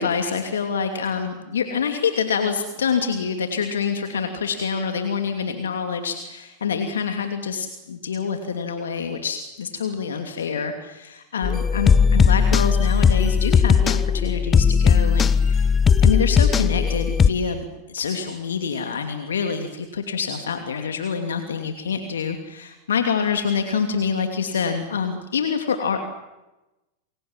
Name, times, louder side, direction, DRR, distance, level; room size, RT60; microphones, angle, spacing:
voice 1, 0.0-15.7 16.0-26.0, left 6 dB, 75° left, 6 dB, 2.7 m, -26 dB
sound 1, 11.4-17.3, left 6 dB, 20° left, 1.0 m, -17 dB
28.5 x 23.0 x 7.5 m, 0.99 s
hypercardioid pair, 95°, 0 cm